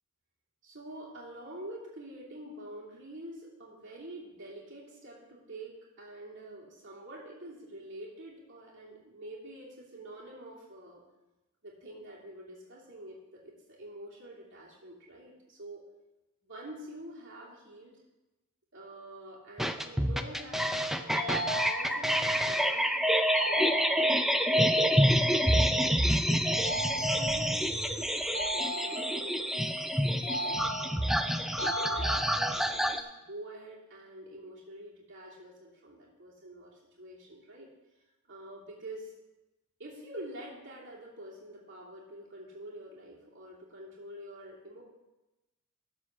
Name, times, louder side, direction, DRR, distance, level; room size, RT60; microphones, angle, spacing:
voice 1, 0.6-11.0 11.6-15.8 16.4-17.9 18.7-26.5 26.9-30.2 30.7-39.1 39.8-44.8, right 1 dB, 55° right, -6 dB, 2.9 m, -47 dB
sound 1, 19.6-33.0, equal, ahead, 0.4 m, -27 dB
sound 2, 21.2-22.2 23.4-24.4 26.4-27.5 28.3-29.4 30.2-31.1 31.6-32.6, equal, 35° left, 4.1 m, -36 dB
13.0 x 4.9 x 7.1 m, 1.0 s
head